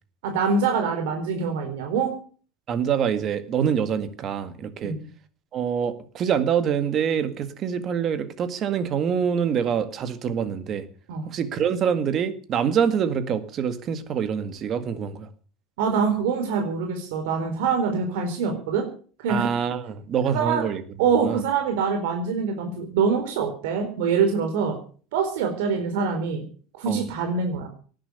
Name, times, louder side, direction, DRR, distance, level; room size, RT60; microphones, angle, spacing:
voice 1, 0.2-2.1 4.8-5.0 11.1-11.3 15.8-18.9 19.2-19.5 20.3-20.6 21.0-24.8 25.1-26.4 26.7-27.7, right 5 dB, 70° right, 4 dB, 4.1 m, -24 dB
voice 2, 2.7-4.9 5.5-10.9 11.3-15.3 19.3-20.8 21.2-21.4 26.9-27.0, right 7 dB, 30° right, 12 dB, 1.8 m, -25 dB
18.5 x 10.5 x 7.0 m, 0.43 s
cardioid pair, 170°, 0 cm